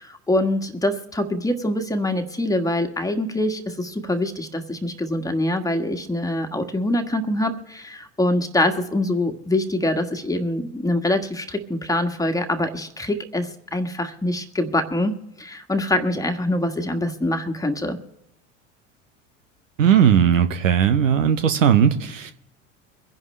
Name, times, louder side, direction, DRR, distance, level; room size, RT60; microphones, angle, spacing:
voice 1, 0.0-15.1 15.4-18.0, left 1 dB, 10° left, 5 dB, 1.5 m, -24 dB
voice 2, 19.8-22.3, right 8 dB, 85° right, 9 dB, 1.1 m, -17 dB
24.0 x 10.5 x 3.3 m, 0.87 s
hypercardioid pair, 80°, 38 cm